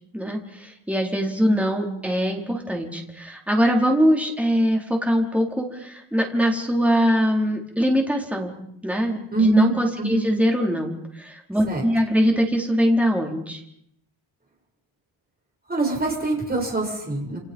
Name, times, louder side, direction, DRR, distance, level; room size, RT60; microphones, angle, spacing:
voice 1, 0.1-8.6 8.8-13.6, equal, 5° right, 0 dB, 4.6 m, -22 dB
voice 2, 9.3-9.7 10.0-10.2 11.7-11.8 15.7-17.4, right 3 dB, 20° right, 0 dB, 7.9 m, -24 dB
29.5 x 29.0 x 5.6 m, 0.73 s
wide cardioid pair, 160°, 50 cm